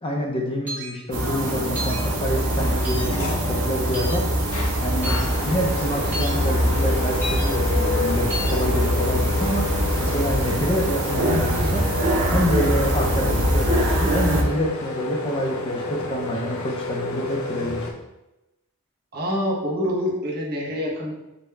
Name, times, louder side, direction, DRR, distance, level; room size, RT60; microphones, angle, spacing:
voice 1, 0.0-4.3 4.8-9.7 10.0-11.8 12.3-17.8, equal, 25° left, 0 dB, 0.5 m, -27 dB
sound 1, 0.7-0.9 1.8-2.0 2.8-3.1 3.9-4.2 5.0-5.2 6.1-6.3 7.2-7.5 8.3-8.5, equal, 10° right, 1.2 m, -31 dB
sound 2, 1.1-14.4, equal, 80° right, 1.0 m, -23 dB
sound 3, 2.5-17.9, left 2 dB, 75° left, 0.7 m, -31 dB
voice 2, 19.1-21.1, equal, 45° right, -4 dB, 1.0 m, -26 dB
6.2 x 2.2 x 3.3 m, 0.94 s
head